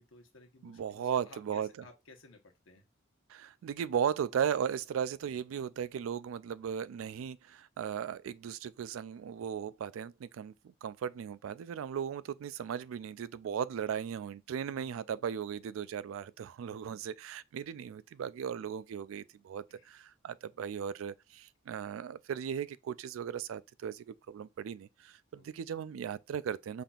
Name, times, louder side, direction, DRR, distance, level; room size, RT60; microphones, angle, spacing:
voice 1, 0.0-2.9 14.7-15.0 16.6-17.0 19.7-19.9 25.3-25.5, left 3 dB, 70° left, 1.0 m, -58 dB
voice 2, 0.6-1.7 3.3-26.8, right 8 dB, 85° right, 0.3 m, -37 dB
5.7 x 3.4 x 2.3 m
head